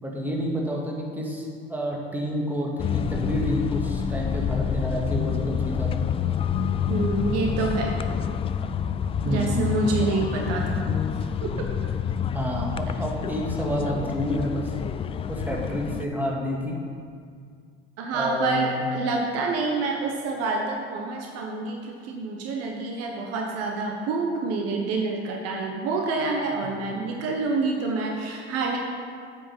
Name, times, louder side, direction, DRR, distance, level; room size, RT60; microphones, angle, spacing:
voice 1, 0.0-6.0 9.2-9.7 12.3-14.7 15.3-16.8 18.1-18.8, equal, 5° right, -2 dB, 2.1 m, -29 dB
sound 1, 2.8-16.0, left 7 dB, 20° left, 0.3 m, -28 dB
voice 2, 6.9-7.9 9.3-10.9 11.4-11.7 18.0-28.8, right 3 dB, 55° right, 1 dB, 1.1 m, -27 dB
8.5 x 6.8 x 5.5 m, 2.2 s
hypercardioid pair, 65°, 29 cm